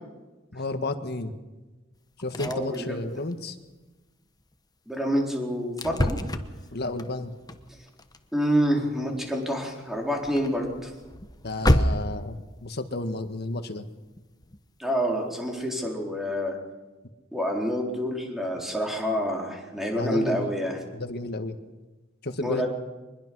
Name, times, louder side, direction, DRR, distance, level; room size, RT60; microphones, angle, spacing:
voice 1, 0.5-1.3 2.2-3.6 6.7-7.3 11.4-13.8 19.9-20.5 20.9-21.6 22.2-22.7, left 2 dB, 55° left, 8 dB, 1.7 m, -32 dB
sound 1, 1.9-2.0 2.2-2.8 3.1-3.4 3.7-3.9 4.4-4.5 5.2-5.3 5.8-12.4 14.2-14.6 15.1-15.2 15.6-15.7, left 1 dB, 20° left, 1.1 m, -29 dB
voice 2, 2.4-2.9 4.9-6.2 8.3-10.9 14.8-16.6 17.3-20.8 22.4-22.7, equal, ahead, 0 dB, 4.2 m, -27 dB
23.5 x 21.0 x 6.3 m, 1.2 s
head